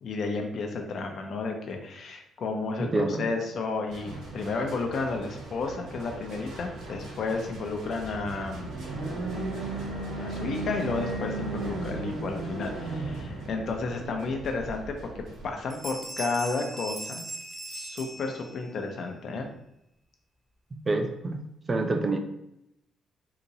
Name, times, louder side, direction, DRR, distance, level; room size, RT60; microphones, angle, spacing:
voice 1, 0.0-8.7 10.2-15.1 15.4-17.2 17.7-19.5, left 3 dB, 60° left, 3 dB, 0.6 m, -32 dB
sound 1, 3.9-15.5, right 2 dB, 85° right, 1.2 m, -36 dB
Bell, 15.3-15.4 15.7-18.8, right 1 dB, 10° right, 0.9 m, -39 dB
voice 2, 20.9-21.4 21.7-22.2, right 2 dB, 30° right, 5 dB, 0.5 m, -26 dB
2.9 x 2.5 x 4.0 m, 0.80 s
cardioid pair, 90°, 0 cm